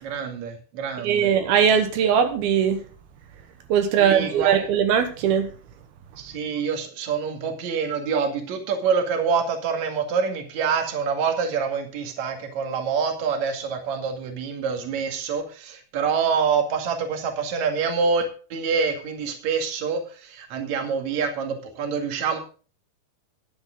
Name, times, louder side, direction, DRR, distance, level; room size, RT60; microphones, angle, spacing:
voice 1, 0.0-1.4 4.0-4.7 6.2-22.4, right 6 dB, 55° right, 3.1 m, -26 dB
voice 2, 1.0-2.9 3.7-5.5, right 8 dB, 80° right, 3.1 m, -20 dB
12.5 x 10.5 x 3.8 m
omnidirectional pair, 4.4 m